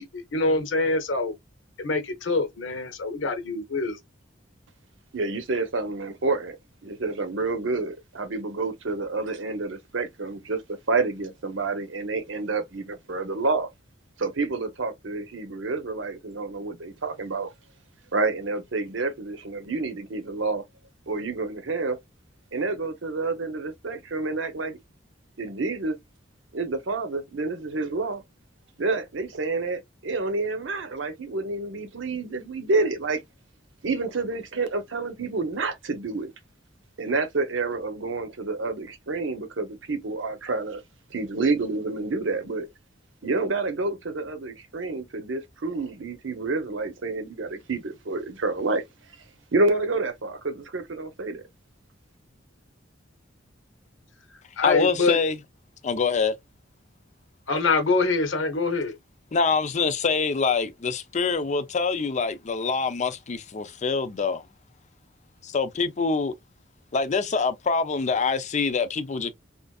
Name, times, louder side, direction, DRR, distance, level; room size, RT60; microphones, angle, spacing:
voice 1, 0.0-1.3 1.8-4.0 54.6-55.2 57.5-58.9, left 3 dB, 75° left, 0.9 m, -25 dB
voice 2, 5.1-6.6 6.8-13.7 14.2-17.5 18.1-20.6 21.1-22.0 22.5-24.8 25.4-26.0 26.5-28.2 28.8-33.2 33.8-36.3 37.0-40.8 41.1-42.7 43.2-48.8 49.5-51.4, right 3 dB, 75° right, 0.8 m, -28 dB
voice 3, 54.6-55.4 55.8-56.3 59.3-64.4 65.4-66.3 66.9-69.3, left 4 dB, 40° left, 0.5 m, -25 dB
4.3 x 2.5 x 2.3 m
head